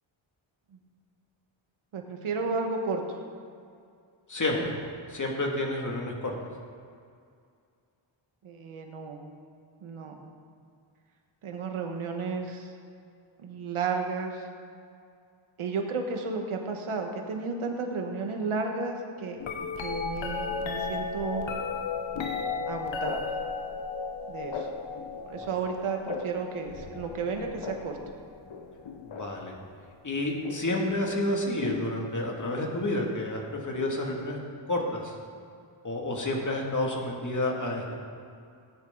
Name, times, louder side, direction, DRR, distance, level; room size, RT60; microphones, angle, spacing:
voice 1, 1.9-3.0 4.5-4.7 8.4-9.2 9.8-10.2 11.4-12.7 13.4-14.4 15.6-19.4 19.8-21.5 22.7-23.3 24.3-24.7 25.3-28.0, right 4 dB, 90° right, 3 dB, 1.5 m, -33 dB
voice 2, 4.3-4.7 5.1-6.4 29.1-29.6 30.0-34.4 34.7-35.1 35.8-37.9, left 1 dB, 40° left, 0 dB, 2.5 m, -30 dB
sound 1, 19.4-29.5 30.4-30.9 31.6-32.6 34.4-34.5, left 5 dB, 65° left, 1.1 m, -35 dB
17.0 x 9.3 x 4.0 m, 2.3 s
cardioid pair, 65°, 48 cm